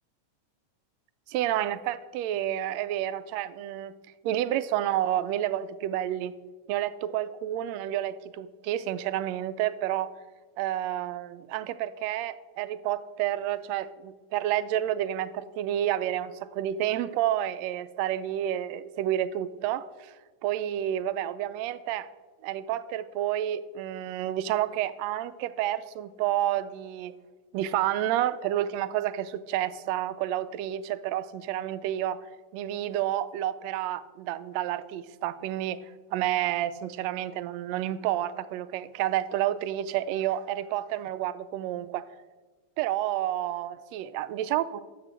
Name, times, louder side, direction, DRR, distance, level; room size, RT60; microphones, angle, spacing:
voice 1, 1.3-3.9 4.2-6.3 6.7-10.1 10.6-20.1 20.4-22.1 22.4-27.1 27.5-32.3 32.5-35.8 36.1-42.0 42.8-44.8, right 12 dB, 80° right, 14 dB, 1.7 m, -30 dB
10.5 x 7.7 x 7.4 m, 1.3 s
omnidirectional pair, 3.3 m